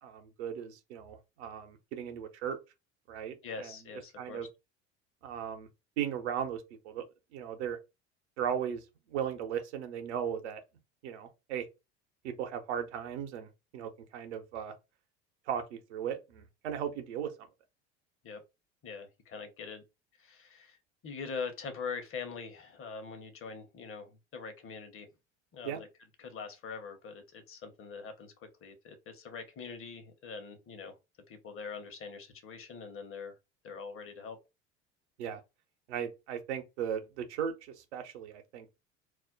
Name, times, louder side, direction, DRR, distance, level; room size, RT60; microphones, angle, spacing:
voice 1, 0.0-2.6 3.1-3.7 4.2-4.5 5.2-5.7 6.0-7.0 7.3-7.8 8.4-10.6 11.0-11.7 12.2-14.7 15.5-17.3 25.6-25.8 35.2-35.4 35.9-38.8, right 8 dB, 80° right, 0.8 m, -37 dB
voice 2, 3.4-4.5 18.2-18.4 18.8-19.8 20.2-20.8 21.0-25.1 25.5-25.9 26.2-31.0 31.3-33.3 33.6-34.4, left 5 dB, 40° left, 0.9 m, -43 dB
2.5 x 2.1 x 3.7 m
hypercardioid pair, 70°, 33 cm